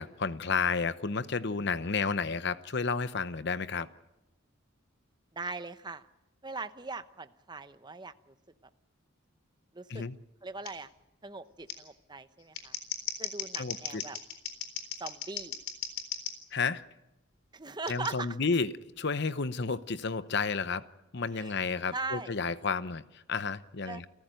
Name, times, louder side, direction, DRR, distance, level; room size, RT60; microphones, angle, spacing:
voice 1, 0.0-3.9 9.9-10.2 13.6-14.0 16.5-16.8 17.9-20.8 21.1-24.1, left 4 dB, 55° left, 0.8 m, -31 dB
voice 2, 5.3-6.0 6.4-8.3 9.7-10.0 10.4-10.9 11.2-12.8 13.2-14.2 15.0-15.6 17.5-18.4 21.3-21.5 21.9-22.3 23.9-24.0, right 3 dB, 20° right, 0.9 m, -40 dB
Scissors, 10.6-10.7 11.7-11.8 12.4-16.3 17.9-18.1, left 7 dB, 75° left, 4.0 m, -37 dB
29.5 x 15.0 x 9.1 m
head